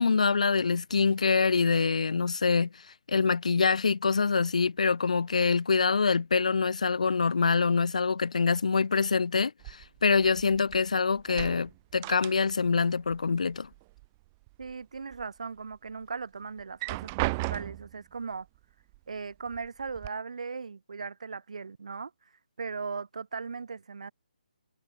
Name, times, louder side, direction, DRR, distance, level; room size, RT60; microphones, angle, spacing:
voice 1, 0.0-2.7 3.1-13.7, left 5 dB, 50° left, 1.7 m, -25 dB
sound 1, 9.6-10.9 11.2-12.8 13.1-14.1 14.5-15.2 15.7-15.8 16.6-18.0 18.9-19.0 19.5-20.1, right 25 dB, 10° right, 0.7 m, -36 dB
voice 2, 14.6-18.5 19.1-22.1 22.6-24.1, right 5 dB, 50° right, 1.5 m, -38 dB
hypercardioid pair, 180°, 5 cm